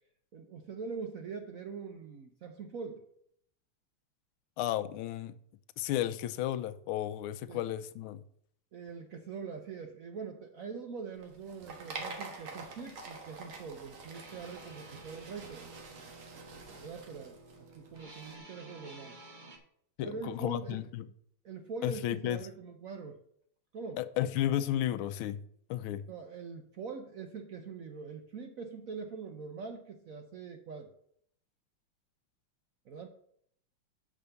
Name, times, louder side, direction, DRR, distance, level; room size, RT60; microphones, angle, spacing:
voice 1, 0.3-3.0 7.5-7.7 8.7-15.6 16.8-19.2 20.0-20.8 21.4-23.2 23.7-24.0 26.1-30.9 32.9-33.1, right 5 dB, 65° right, 0.8 m, -43 dB
voice 2, 4.6-5.3 5.8-8.2 20.0-21.1 21.8-22.4 24.0-25.4 25.7-26.1, left 12 dB, 85° left, 1.4 m, -33 dB
sound 1, 11.2-18.3, right 3 dB, 85° right, 2.2 m, -47 dB
sound 2, 14.1-19.6, right 2 dB, 30° right, 1.0 m, -52 dB
7.1 x 5.1 x 6.9 m
omnidirectional pair, 2.2 m